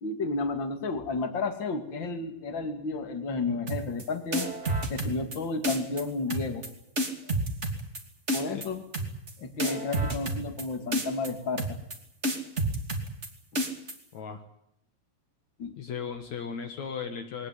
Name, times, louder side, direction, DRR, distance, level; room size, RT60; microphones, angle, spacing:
voice 1, 0.0-4.5 4.9-6.7 7.2-7.3 8.3-8.8 9.4-11.8 15.6-15.7, left 3 dB, 35° left, 7 dB, 1.9 m, -32 dB
sound 1, 3.7-4.0 4.3-5.4 5.6-6.0 6.3-6.7 6.9-8.0 8.3-8.7 8.9-9.3 9.6-10.6 10.9-11.3 11.6-11.9 12.2-13.3 13.5-13.9, right 1 dB, 25° right, 1.7 m, -29 dB
voice 2, 14.1-14.4 15.8-17.5, left 6 dB, 80° left, 6 dB, 1.6 m, -36 dB
21.5 x 18.5 x 9.9 m, 0.78 s
omnidirectional pair, 5.8 m